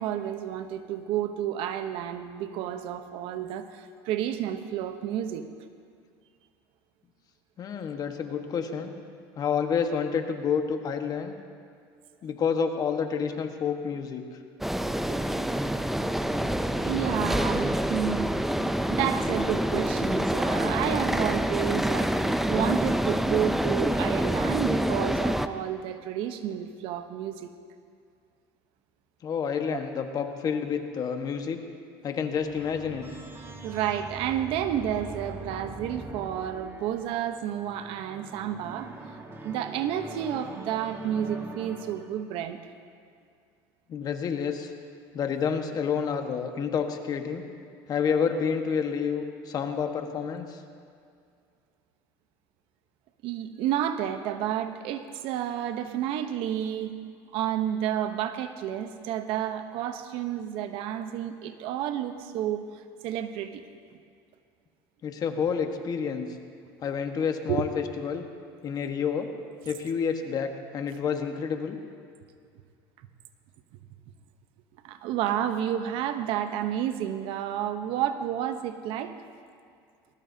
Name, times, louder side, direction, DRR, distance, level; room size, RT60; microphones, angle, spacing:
voice 1, 0.0-5.4 15.1-15.2 16.7-18.3 18.9-27.5 29.7-29.8 33.6-38.9 39.4-42.6 53.2-56.9 57.3-63.6 66.9-67.0 67.5-67.7 74.8-79.1, right 10 dB, 65° right, 9 dB, 0.9 m, -31 dB
voice 2, 7.6-8.9 9.4-11.4 12.2-14.2 29.2-31.6 32.0-33.1 43.9-44.7 45.1-47.4 47.9-50.6 65.0-66.4 66.8-68.2 68.6-69.3 69.6-71.8, left 6 dB, 40° left, 5 dB, 1.4 m, -29 dB
sound 1, 14.6-25.5, equal, 5° right, 0.5 m, -26 dB
sound 2, 32.3-42.4, right 2 dB, 25° right, 1.9 m, -43 dB
19.5 x 19.5 x 2.8 m, 2.3 s
supercardioid pair, 115°, 10 cm